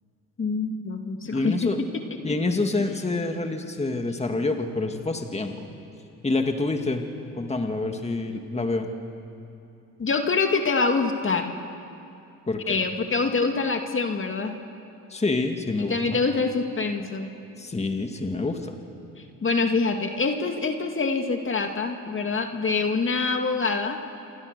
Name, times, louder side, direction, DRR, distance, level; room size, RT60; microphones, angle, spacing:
voice 1, 0.4-1.6 10.0-11.5 12.7-14.5 15.9-17.3 19.4-24.0, left 4 dB, 40° left, 5 dB, 2.2 m, -25 dB
voice 2, 1.3-1.8 2.2-5.7 6.2-7.0 7.4-8.9 12.5-12.8 15.1-16.2 17.6-18.8, left 3 dB, 20° left, 4 dB, 2.1 m, -27 dB
28.0 x 24.0 x 6.8 m, 2.7 s
supercardioid pair, 70°, 33 cm